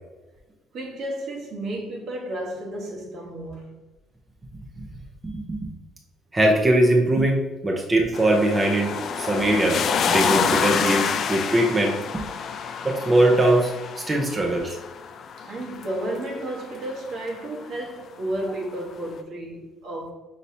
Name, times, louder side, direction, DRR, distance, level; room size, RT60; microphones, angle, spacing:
voice 1, 0.7-3.8 15.4-20.1, right 1 dB, 65° right, 1.2 m, -32 dB
voice 2, 5.2-5.6 6.3-7.4 7.6-9.8 10.1-12.2 12.8-13.7 14.1-14.8, right 1 dB, 25° right, 0.7 m, -21 dB
sound 1, 8.1-17.2 18.5-18.6, left 6 dB, 55° left, 0.4 m, -27 dB
5.4 x 3.0 x 2.7 m
supercardioid pair, 80°, 0 cm